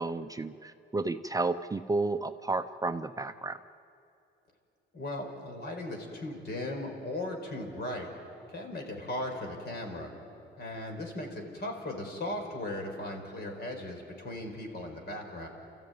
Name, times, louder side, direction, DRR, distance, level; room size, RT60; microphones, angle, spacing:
voice 1, 0.0-3.6, right 3 dB, 15° right, 9 dB, 0.6 m, -32 dB
voice 2, 4.9-8.1 8.5-10.1 10.6-15.5, left 1 dB, 55° left, 3 dB, 4.8 m, -37 dB
29.5 x 14.0 x 9.5 m, 2.7 s
cardioid pair, 90°, 20 cm